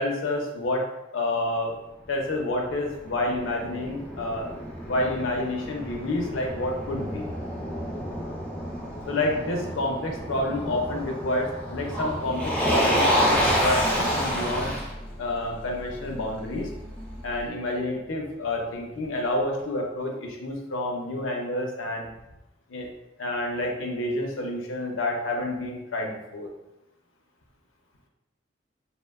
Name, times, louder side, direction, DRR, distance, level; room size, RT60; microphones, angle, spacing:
voice 1, 0.0-1.8 2.1-4.5 4.9-7.2 9.1-14.8 15.2-16.7 17.2-22.1 22.7-22.9 23.2-26.5, left 1 dB, 80° left, 1 dB, 0.5 m, -29 dB
Motor vehicle (road), 2.4-17.4, equal, 5° left, 0.3 m, -29 dB
2.7 x 2.1 x 2.3 m, 0.94 s
head